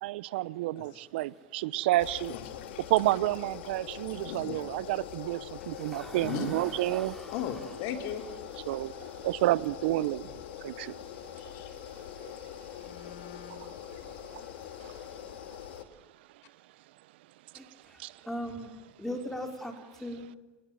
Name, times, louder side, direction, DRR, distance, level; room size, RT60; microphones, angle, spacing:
voice 1, 0.0-2.3 2.9-7.2 8.7-11.0 12.2-12.3 13.5-13.8 14.0-14.4 14.8-14.9 17.5-17.7 18.0-18.2, right 16 dB, 80° right, 0.9 m, -30 dB
sound 1, 2.0-15.8, left 10 dB, 85° left, 2.2 m, -43 dB
voice 2, 2.3-2.7 4.0-4.7 6.1-6.8 7.3-8.2 11.4-11.7 12.2-12.4, left 8 dB, 65° left, 3.9 m, -38 dB
voice 3, 5.9-6.3 7.0-7.2 17.5-17.6 18.3-18.7 19.0-19.7 20.0-20.3, equal, 5° left, 4.6 m, -38 dB
28.5 x 19.5 x 7.6 m
supercardioid pair, 110°, 6 cm